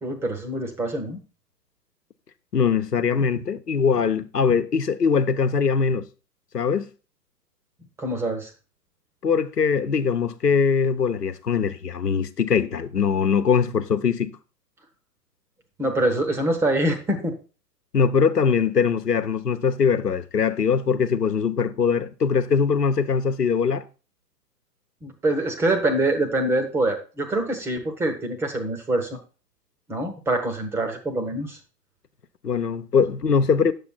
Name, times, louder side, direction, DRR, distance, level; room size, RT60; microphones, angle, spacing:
voice 1, 0.0-1.2 8.0-8.5 15.8-17.3 25.0-29.2 29.9-31.6, right 1 dB, 5° right, 0.9 m, -25 dB
voice 2, 2.5-6.0 6.5-6.9 9.2-14.4 17.9-23.8 32.4-33.7, left 6 dB, 70° left, 1.2 m, -22 dB
10.5 x 7.4 x 4.1 m
figure-of-eight pair, 120°, 49 cm